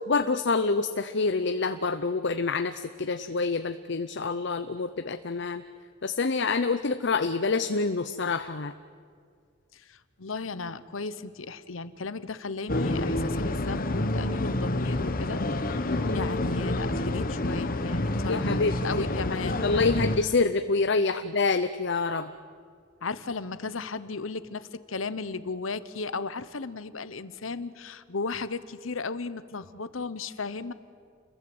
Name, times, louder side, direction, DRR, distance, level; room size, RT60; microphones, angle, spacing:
voice 1, 0.1-5.6 6.0-8.7 16.0-16.2 18.3-18.8 19.6-22.3, left 4 dB, 60° left, 9 dB, 0.8 m, -27 dB
voice 2, 9.7-20.0 23.0-30.7, left 4 dB, 85° left, 14 dB, 1.1 m, -35 dB
sound 1, 12.7-20.2, left 1 dB, 45° left, 1.1 m, -28 dB
29.0 x 22.0 x 8.0 m, 2.1 s
head